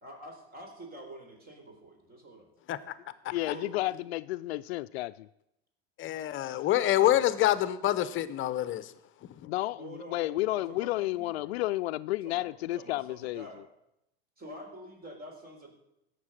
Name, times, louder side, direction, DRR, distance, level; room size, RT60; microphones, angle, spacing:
voice 1, 0.0-2.5 3.4-4.0 9.8-11.7 12.2-13.6 14.4-15.7, right 1 dB, 30° right, 4.0 m, -47 dB
voice 2, 3.3-5.3 9.4-13.5, left 17 dB, 75° left, 0.5 m, -32 dB
voice 3, 6.0-8.9 9.4-9.5, left 13 dB, 40° left, 0.8 m, -26 dB
16.5 x 6.7 x 6.5 m
supercardioid pair, 105°, 32 cm